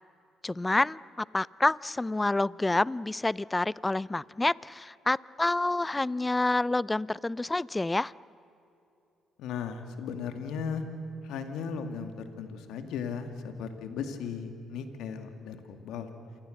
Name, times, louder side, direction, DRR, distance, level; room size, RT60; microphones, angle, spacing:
voice 1, 0.4-8.1, left 2 dB, 20° left, 22 dB, 0.5 m, -28 dB
voice 2, 9.4-10.8 11.2-16.1, left 6 dB, 75° left, 7 dB, 2.3 m, -36 dB
28.0 x 23.5 x 6.6 m, 2.8 s
hypercardioid pair, 50°, 0 cm